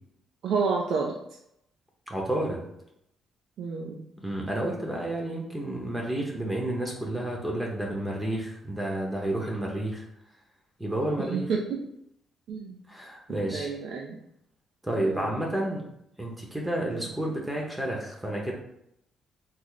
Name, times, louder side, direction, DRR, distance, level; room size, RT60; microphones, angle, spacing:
voice 1, 0.4-1.2 3.6-4.0 11.3-11.8 12.5-12.8 13.3-14.2 15.0-15.3 16.9-17.1, right 5 dB, 70° right, -1 dB, 0.4 m, -30 dB
voice 2, 2.1-2.6 4.2-10.0 10.8-11.5 12.9-13.7 14.8-15.8 16.2-18.5, right 1 dB, 10° right, -1 dB, 0.8 m, -30 dB
3.2 x 2.0 x 3.8 m, 0.78 s
cardioid pair, 75°, 0 cm